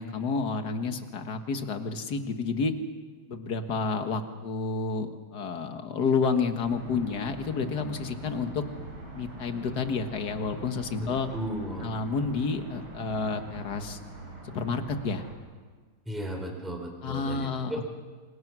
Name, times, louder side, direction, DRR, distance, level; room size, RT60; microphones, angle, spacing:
voice 1, 0.0-2.7 3.3-8.6 9.2-11.3 11.8-14.0 14.4-15.2 17.0-17.9, left 4 dB, 50° left, 7 dB, 2.1 m, -30 dB
sound 1, 6.6-15.3, right 2 dB, 80° right, 5.3 m, -43 dB
voice 2, 11.0-11.9 16.1-17.8, equal, ahead, 1 dB, 4.2 m, -35 dB
29.0 x 25.5 x 6.2 m, 1.5 s
omnidirectional pair, 2.3 m